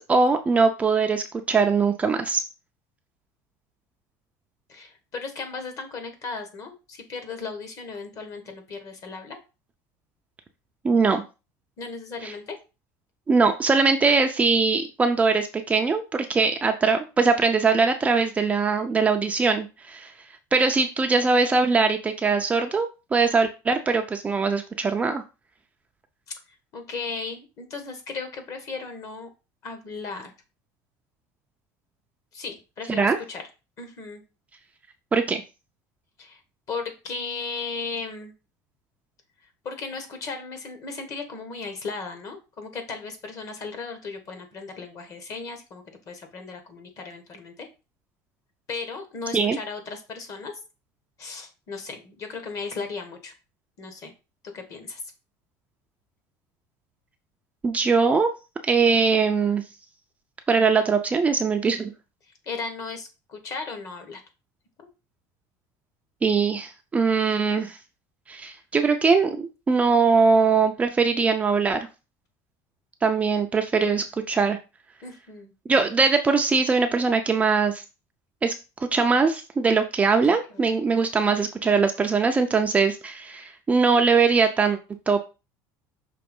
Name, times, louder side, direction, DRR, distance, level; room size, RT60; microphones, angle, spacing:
voice 1, 0.0-2.5 10.8-11.2 12.2-12.3 13.3-20.1 20.5-25.2 32.9-33.2 35.1-35.4 49.3-49.6 57.6-58.3 58.6-59.6 60.5-61.9 66.2-67.8 68.3-71.9 73.0-74.6 75.7-77.8 78.4-78.5 78.8-84.8 85.1-85.2, right 4 dB, 15° right, 4 dB, 0.5 m, -21 dB
voice 2, 4.7-9.4 11.8-12.6 26.7-29.3 29.6-30.3 32.3-33.4 33.8-34.2 36.2-36.4 36.7-38.3 39.6-47.7 48.7-50.6 51.2-53.3 53.8-54.1 54.5-55.0 62.4-64.2 64.8-64.9 75.0-75.5 80.5-80.7, left 4 dB, 40° left, 6 dB, 1.6 m, -36 dB
5.8 x 3.1 x 5.3 m, 0.29 s
cardioid pair, 150°, 8 cm